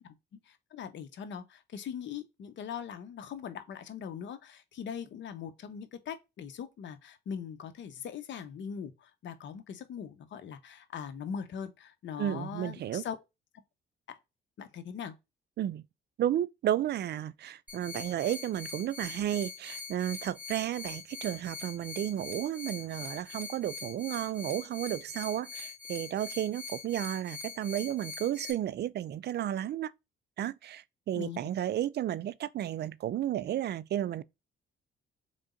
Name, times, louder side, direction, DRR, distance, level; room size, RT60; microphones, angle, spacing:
voice 1, 0.5-13.2 14.1-14.2 14.6-15.1 31.1-31.4, left 7 dB, 65° left, 1.0 m, -41 dB
voice 2, 12.2-13.0 15.6-15.8 16.2-29.9 30.4-34.2, right 11 dB, 55° right, 0.4 m, -33 dB
sound 1, 17.7-28.5, left 4 dB, 10° right, 3.0 m, -43 dB
4.0 x 3.5 x 3.7 m
cardioid pair, 90°, 20 cm